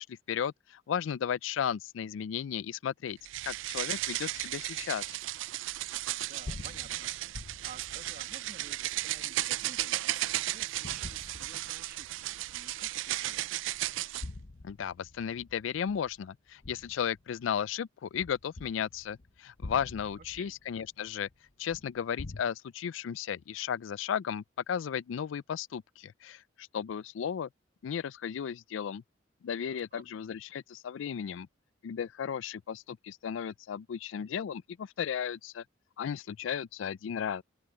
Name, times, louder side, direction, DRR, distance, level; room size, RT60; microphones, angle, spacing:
voice 1, 0.0-3.2 3.5-5.2 14.6-21.3 21.6-27.5 27.8-29.0 29.4-31.5 31.8-35.6 36.0-37.4, left 8 dB, 80° left, 0.4 m, -35 dB
sound 1, 3.2-14.3, right 15 dB, 80° right, 0.4 m, -35 dB
sound 2, 6.2-10.3 10.8-12.2 12.6-12.7 13.9-17.6 18.1-22.4, left 2 dB, 50° left, 0.8 m, -47 dB
voice 2, 6.3-7.1 7.4-13.6 20.2-20.5 29.5-30.1, right 4 dB, 50° right, 1.8 m, -53 dB
open air
head